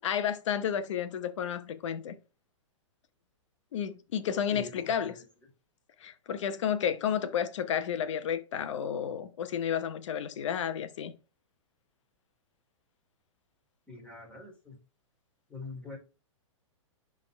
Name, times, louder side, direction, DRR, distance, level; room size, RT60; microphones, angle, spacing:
voice 1, 0.0-2.2 3.7-5.1 6.0-11.1, left 8 dB, 65° left, 1.0 m, -31 dB
voice 2, 13.9-14.8 15.5-16.0, left 3 dB, 5° left, 2.8 m, -44 dB
10.5 x 3.7 x 3.4 m
hypercardioid pair, 125°, 17 cm